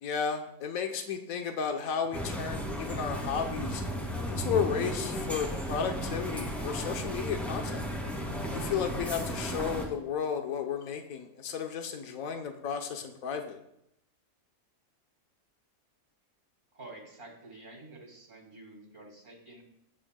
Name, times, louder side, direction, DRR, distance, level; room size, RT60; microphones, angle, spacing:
voice 1, 0.0-3.8 4.3-7.9 8.5-13.6, left 7 dB, 75° left, 4 dB, 1.4 m, -33 dB
sound 1, 2.1-9.9, equal, ahead, 2.3 m, -34 dB
voice 2, 16.7-19.6, right 2 dB, 40° right, 1 dB, 3.1 m, -49 dB
18.5 x 10.0 x 2.3 m, 0.78 s
omnidirectional pair, 1.5 m